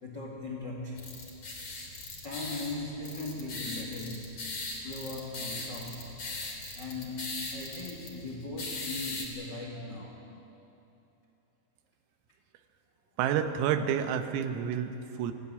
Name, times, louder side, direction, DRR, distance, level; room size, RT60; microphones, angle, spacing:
voice 1, 0.0-1.1 2.2-6.2 6.7-10.3, left 2 dB, 55° left, -1 dB, 1.1 m, -39 dB
sound 1, 1.0-9.3, left 2 dB, 35° left, 3.4 m, -40 dB
voice 2, 13.2-15.3, right 8 dB, 90° right, 8 dB, 3.8 m, -29 dB
23.0 x 15.5 x 10.0 m, 2.9 s
omnidirectional pair, 5.8 m